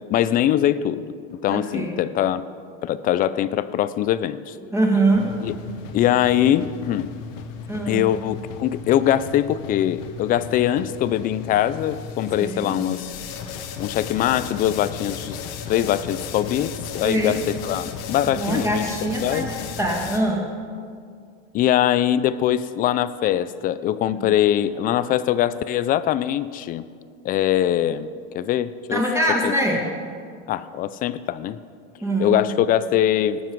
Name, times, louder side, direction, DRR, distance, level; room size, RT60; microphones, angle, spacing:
voice 1, 0.1-1.1 1.4-2.4 2.8-4.6 5.4-5.6 5.9-7.1 7.9-13.1 13.8-15.4 15.7-18.9 19.2-19.5 21.5-26.9 27.2-29.0 29.4-29.6 30.5-31.6 32.2-33.4, left 11 dB, 30° left, 15 dB, 0.4 m, -22 dB
voice 2, 1.5-2.0 4.7-5.3 7.7-8.0 12.4-12.9 17.0-17.4 18.4-19.5 19.8-20.5 24.1-24.3 28.9-29.9 32.0-32.4, right 1 dB, 10° right, -1 dB, 1.9 m, -23 dB
sound 1, 5.1-20.2, left 6 dB, 70° left, 1.2 m, -35 dB
18.5 x 7.3 x 4.6 m, 2.2 s
supercardioid pair, 145°, 29 cm